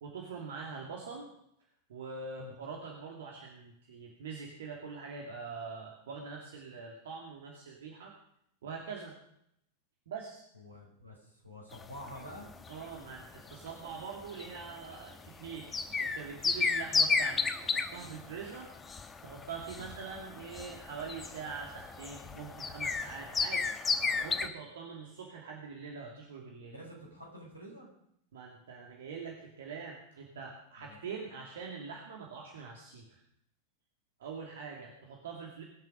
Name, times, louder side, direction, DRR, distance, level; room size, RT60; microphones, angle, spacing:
voice 1, 0.0-1.3 1.9-8.1 8.6-9.2 10.1-10.4 12.7-15.7 16.0-18.7 19.2-23.7 24.0-26.7 28.3-33.2 34.2-35.6, right 5 dB, 60° right, 0 dB, 2.4 m, -44 dB
voice 2, 10.5-12.5 19.7-19.9 26.7-27.9 30.8-31.0, left 1 dB, 85° right, -2 dB, 5.3 m, -48 dB
sound 1, 11.7-24.5, left 4 dB, 20° left, 1.1 m, -34 dB
23.0 x 7.8 x 5.2 m, 0.74 s
figure-of-eight pair, 90°, 0 cm